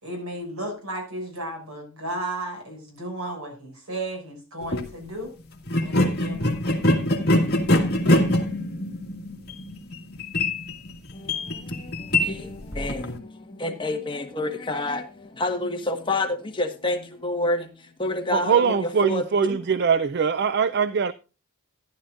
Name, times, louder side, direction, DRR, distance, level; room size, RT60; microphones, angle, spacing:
voice 1, 0.0-5.3 5.8-6.8, right 1 dB, 80° right, 6.3 m, -34 dB
sound 1, 4.6-4.9 5.7-13.2, left 1 dB, 50° left, 1.9 m, -24 dB
voice 2, 11.1-17.7 18.0-19.6, left 2 dB, 20° left, 1.5 m, -29 dB
voice 3, 18.3-21.1, right 6 dB, 50° right, 0.4 m, -22 dB
14.5 x 11.0 x 2.5 m
head